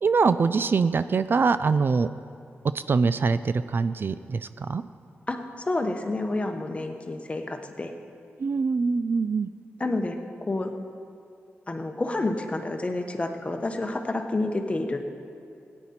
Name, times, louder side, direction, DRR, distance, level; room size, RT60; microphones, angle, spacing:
voice 1, 0.0-2.1 2.7-4.8 8.4-9.5, right 4 dB, 50° right, 13 dB, 0.3 m, -23 dB
voice 2, 5.3-7.9 9.8-10.7 11.7-15.0, left 2 dB, 25° left, 5 dB, 1.0 m, -29 dB
17.0 x 9.9 x 4.3 m, 2.4 s
wide cardioid pair, 100°, 5 cm